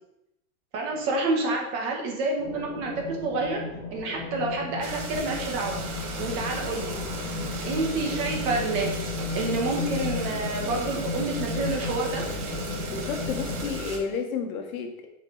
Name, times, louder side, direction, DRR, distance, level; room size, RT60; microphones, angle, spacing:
voice 1, 0.7-3.6 3.9-5.8 6.2-7.0 7.6-8.9 9.3-12.3, right 3 dB, 30° right, 0 dB, 1.3 m, -28 dB
sound 1, 2.4-13.7, left 4 dB, 5° left, 0.3 m, -34 dB
sound 2, 4.8-14.0, right 2 dB, 55° right, 1.7 m, -36 dB
voice 2, 12.9-15.1, left 5 dB, 75° left, 4 dB, 1.4 m, -31 dB
7.7 x 4.7 x 4.0 m, 0.86 s
supercardioid pair, 170°, 42 cm